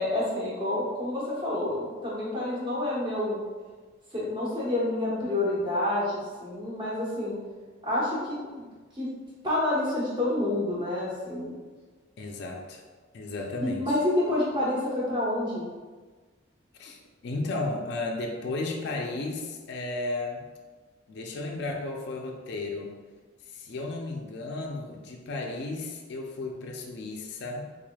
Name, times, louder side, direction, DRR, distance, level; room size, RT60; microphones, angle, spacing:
voice 1, 0.0-3.4 4.1-7.4 7.8-8.6 8.9-9.1 9.4-11.5 13.6-15.7, left 1 dB, 25° right, -7 dB, 1.1 m, -28 dB
voice 2, 12.2-12.8 13.1-14.0 16.8-20.4 21.1-22.9 23.5-27.7, left 2 dB, 60° left, 1 dB, 0.4 m, -34 dB
3.9 x 3.2 x 2.2 m, 1.4 s
head